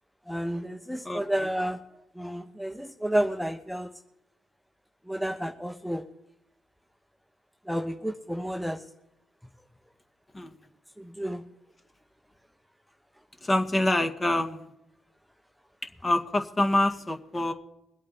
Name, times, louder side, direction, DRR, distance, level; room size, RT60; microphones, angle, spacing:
voice 1, 0.3-1.8 2.2-3.9 5.1-6.0 7.7-8.8 11.0-11.4, right 1 dB, ahead, 5 dB, 1.0 m, -31 dB
voice 2, 13.4-14.7 16.0-17.5, left 1 dB, 25° left, 5 dB, 1.9 m, -26 dB
22.0 x 8.4 x 4.3 m, 0.85 s
hypercardioid pair, 50°, 0 cm